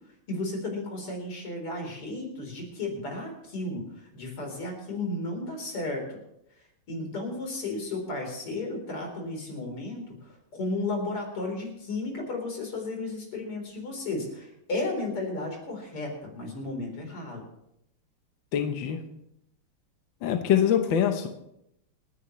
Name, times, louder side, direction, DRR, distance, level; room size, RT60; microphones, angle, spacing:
voice 1, 0.3-3.8 4.1-6.2 6.9-10.1 10.5-17.4, left 2 dB, 85° left, 1 dB, 4.8 m, -33 dB
voice 2, 18.5-19.0 20.2-21.3, left 9 dB, 65° left, 6 dB, 1.6 m, -24 dB
28.0 x 10.0 x 3.2 m, 0.81 s
omnidirectional pair, 2.4 m